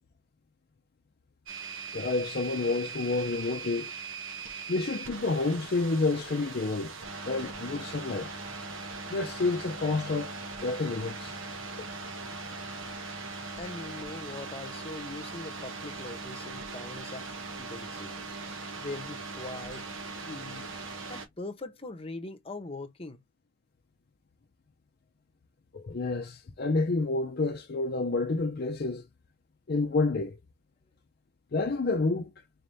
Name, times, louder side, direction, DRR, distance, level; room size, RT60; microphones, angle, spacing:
sound 1, 1.5-21.3, right 4 dB, 85° right, 1.1 m, -40 dB
voice 1, 1.9-3.9 4.7-6.9 7.3-8.3 9.1-11.4 11.8-11.9 25.7-29.0 29.7-30.4 31.5-32.3, left 3 dB, 50° left, 0.5 m, -29 dB
voice 2, 13.6-17.3 17.6-18.2 18.8-19.8 20.2-20.8 21.1-23.2, left 2 dB, 30° left, 0.9 m, -41 dB
4.0 x 3.4 x 2.6 m
head